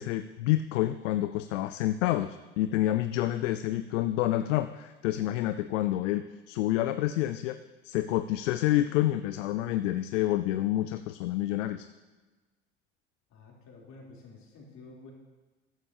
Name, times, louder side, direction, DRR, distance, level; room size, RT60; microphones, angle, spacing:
voice 1, 0.0-7.6 7.8-11.9, left 14 dB, 75° left, 11 dB, 0.5 m, -28 dB
voice 2, 13.3-15.1, left 3 dB, 45° left, -2 dB, 3.2 m, -50 dB
13.5 x 9.7 x 2.7 m, 1.2 s
hypercardioid pair, 75°, 38 cm